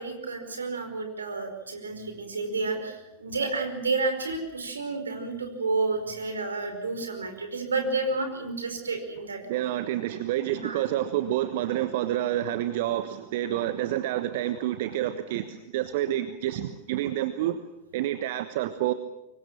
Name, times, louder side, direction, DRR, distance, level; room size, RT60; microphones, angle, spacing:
voice 1, 0.0-9.4 10.5-10.8, right 3 dB, 75° right, 6 dB, 5.0 m, -30 dB
voice 2, 9.4-17.6 17.9-18.9, right 13 dB, 50° right, 11 dB, 1.2 m, -28 dB
25.5 x 23.0 x 7.4 m, 0.92 s
figure-of-eight pair, 90°, 0 cm